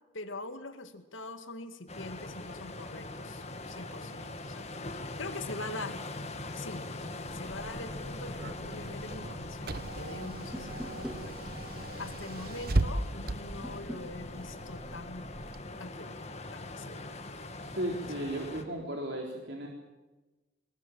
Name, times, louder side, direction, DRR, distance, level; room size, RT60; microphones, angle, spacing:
voice 1, 0.1-4.9 5.2-6.0 6.5-6.9 7.3-11.4 12.0-15.3 15.8-16.2 16.5-17.2, left 2 dB, 80° left, 9 dB, 2.2 m, -43 dB
sound 1, 1.9-18.6, left 2 dB, 35° left, 2.1 m, -42 dB
Car / Engine, 7.3-15.6, right 2 dB, 50° right, 1.0 m, -37 dB
sound 2, 10.5-11.3 13.6-14.1, equal, 5° right, 2.4 m, -41 dB
voice 2, 17.6-19.7, right 1 dB, 65° right, 1 dB, 3.8 m, -35 dB
23.0 x 20.0 x 8.8 m, 1.1 s
head